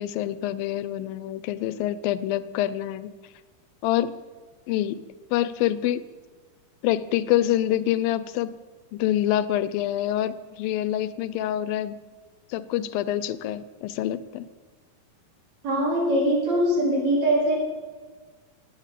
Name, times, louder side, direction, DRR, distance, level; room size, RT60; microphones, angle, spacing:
voice 1, 0.0-3.1 3.8-4.1 4.7-5.0 5.3-6.0 6.8-8.5 8.9-12.0 12.5-14.5, left 12 dB, 90° left, 16 dB, 2.5 m, -26 dB
voice 2, 15.6-17.6, right 1 dB, 50° right, -2 dB, 4.9 m, -22 dB
18.5 x 9.1 x 8.3 m, 1.4 s
omnidirectional pair, 4.0 m